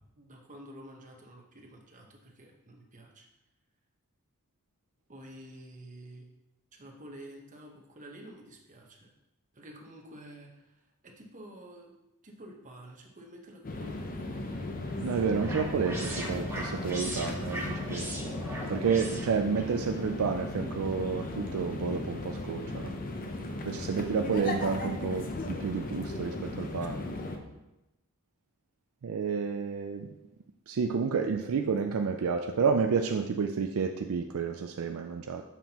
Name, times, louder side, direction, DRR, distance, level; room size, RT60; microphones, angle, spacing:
voice 1, 0.2-3.3 5.1-6.3 6.7-9.1 9.5-11.9 12.2-14.6 23.4-23.5 23.9-24.0 26.8-26.9, right 1 dB, 35° right, 1 dB, 1.0 m, -50 dB
sound 1, 13.6-27.4, left 2 dB, 40° left, 0.7 m, -36 dB
sound 2, 14.5-19.7, right 1 dB, 10° right, 1.6 m, -40 dB
voice 2, 15.0-18.2 18.7-23.0 23.7-26.9 29.0-30.1 30.7-35.4, right 5 dB, 65° right, 4 dB, 0.4 m, -30 dB
7.1 x 5.8 x 2.9 m, 0.96 s
head